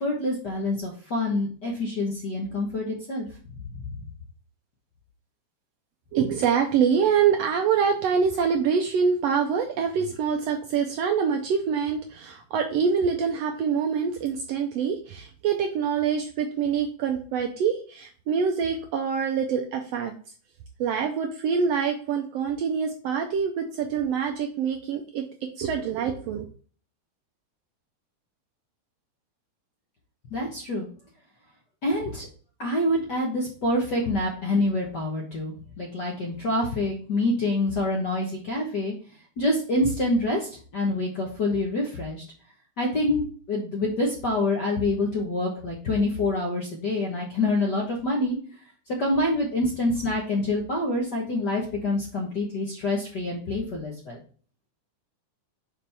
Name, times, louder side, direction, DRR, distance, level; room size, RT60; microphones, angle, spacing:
voice 1, 0.0-3.3 3.7-3.8 30.3-30.9 31.8-32.3 32.6-38.9 39.4-42.2 42.8-48.4 49.0-54.2, left 2 dB, 55° left, -2 dB, 1.2 m, -26 dB
voice 2, 6.1-20.1 20.8-25.2 25.6-26.5, right 6 dB, 80° right, 4 dB, 1.5 m, -25 dB
5.7 x 5.1 x 3.4 m, 0.42 s
omnidirectional pair, 3.4 m